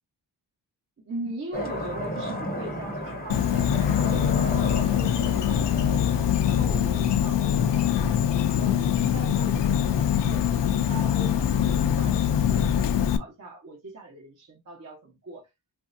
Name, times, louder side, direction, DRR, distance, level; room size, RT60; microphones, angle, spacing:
voice 1, 1.0-6.1 6.4-8.2 8.4-10.5 10.9-15.5, right 2 dB, 40° right, 0.9 m, -40 dB
sound 1, 1.5-7.5, left 1 dB, 20° left, 0.7 m, -34 dB
Insect, 3.3-13.2, left 9 dB, 75° left, 0.5 m, -23 dB
3.1 x 2.6 x 2.5 m
wide cardioid pair, 100°, 42 cm